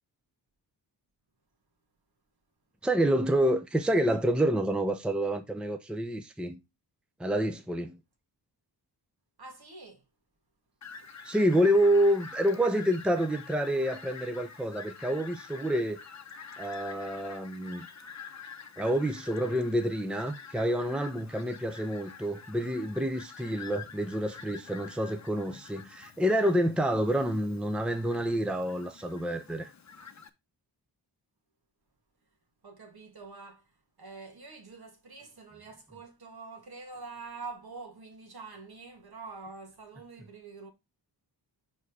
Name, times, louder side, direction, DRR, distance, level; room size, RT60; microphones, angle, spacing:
voice 1, 2.8-6.6 7.2-8.0 11.2-16.0 16.6-17.9 18.8-29.7, equal, ahead, 0.7 m, -28 dB
voice 2, 9.4-10.0 11.0-11.1 32.6-40.7, right 4 dB, 60° right, 2.2 m, -46 dB
Fowl, 10.8-30.3, left 6 dB, 40° left, 0.9 m, -47 dB
5.5 x 4.5 x 4.7 m
cardioid pair, 80°, 43 cm